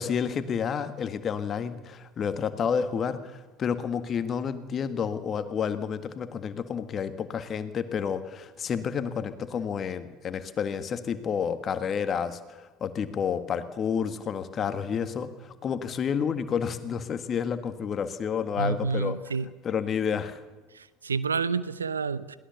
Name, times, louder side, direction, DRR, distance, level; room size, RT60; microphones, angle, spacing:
voice 1, 0.0-19.2 19.6-20.4, left 7 dB, 40° left, 11 dB, 1.6 m, -30 dB
voice 2, 18.6-19.5 20.7-22.4, right 5 dB, 85° right, 17 dB, 0.7 m, -29 dB
22.0 x 17.5 x 7.0 m, 1.2 s
figure-of-eight pair, 65°, 0 cm